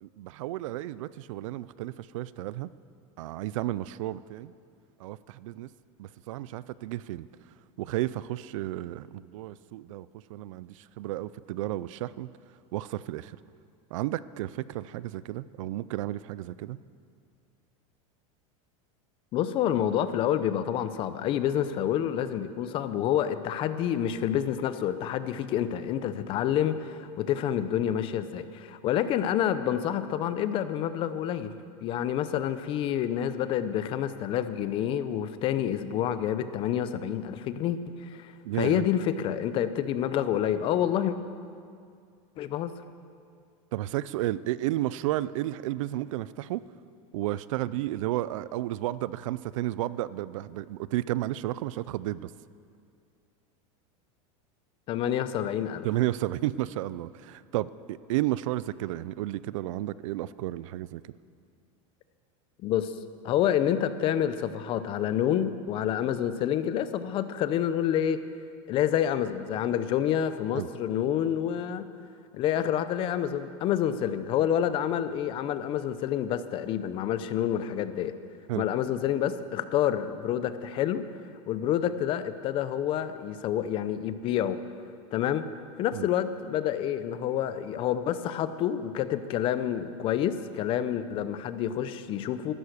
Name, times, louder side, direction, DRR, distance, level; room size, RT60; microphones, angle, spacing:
voice 1, 0.0-2.7 3.2-4.5 5.0-5.7 6.0-7.3 7.8-12.3 12.7-13.4 13.9-16.8 38.4-38.8 43.7-46.6 47.1-52.3 55.8-61.1 70.5-70.7 78.5-78.7 85.9-86.1, right 15 dB, 70° right, 18 dB, 0.5 m, -32 dB
voice 2, 19.3-31.5 31.8-38.3 38.6-41.2 42.4-42.7 54.9-55.9 62.6-62.9 63.2-68.2 68.7-71.9 72.3-78.1 78.6-81.0 81.5-84.6 85.1-85.4 85.8-92.5, left 10 dB, 30° left, 12 dB, 0.6 m, -28 dB
14.5 x 12.5 x 6.6 m, 2.3 s
supercardioid pair, 160°, 17 cm